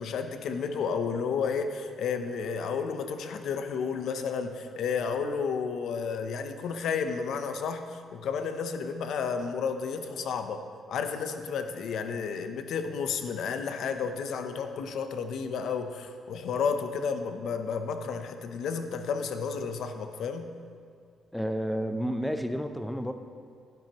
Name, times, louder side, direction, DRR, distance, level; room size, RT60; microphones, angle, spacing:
voice 1, 0.0-20.5, left 5 dB, 70° left, 8 dB, 0.7 m, -32 dB
voice 2, 21.3-23.1, equal, 5° left, 8 dB, 0.6 m, -30 dB
11.5 x 10.5 x 3.0 m, 2.3 s
cardioid pair, 90°, 0 cm